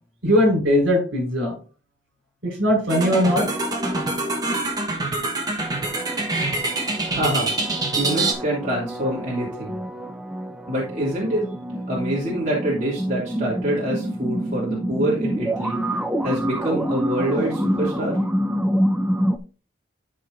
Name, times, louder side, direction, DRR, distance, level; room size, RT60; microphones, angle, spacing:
voice 1, 0.2-1.6 2.4-3.5, equal, 70° right, 0 dB, 4.7 m, -19 dB
sound 1, 2.9-8.3, right 2 dB, 20° right, 1.2 m, -25 dB
sound 2, 5.6-19.4, equal, 5° right, 0.5 m, -27 dB
voice 2, 7.1-7.5 7.9-9.8 10.7-11.6 11.9-15.8 16.2-18.2, right 1 dB, 35° right, -6 dB, 2.7 m, -25 dB
13.0 x 5.3 x 2.6 m, 0.37 s
head